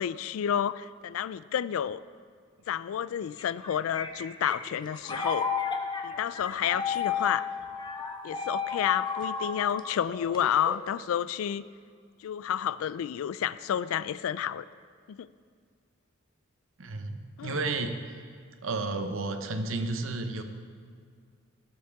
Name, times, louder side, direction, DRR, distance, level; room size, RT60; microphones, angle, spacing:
voice 1, 0.0-2.0 2.7-5.5 6.0-7.5 8.2-11.7 12.2-14.7 15.1-15.3 17.4-17.6, left 9 dB, 80° left, 18 dB, 0.3 m, -30 dB
sound 1, 3.4-10.9, left 5 dB, 20° left, 0.6 m, -33 dB
voice 2, 16.8-18.2 18.6-20.4, right 3 dB, 70° right, 7 dB, 0.8 m, -32 dB
17.0 x 7.4 x 3.5 m, 2.1 s
head